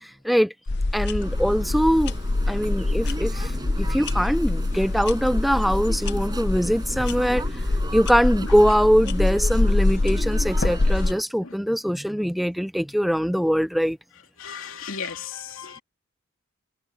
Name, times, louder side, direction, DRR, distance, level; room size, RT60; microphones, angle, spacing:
voice 1, 0.0-0.5 0.9-2.1 2.5-7.6 7.9-14.0, equal, ahead, 0.4 m, -22 dB
sound 1, 0.7-11.1, left 2 dB, 50° left, 0.8 m, -25 dB
sound 2, 1.2-11.2, right 1 dB, 20° right, 6.3 m, -37 dB
voice 2, 14.4-15.8, left 6 dB, 70° left, 2.8 m, -35 dB
head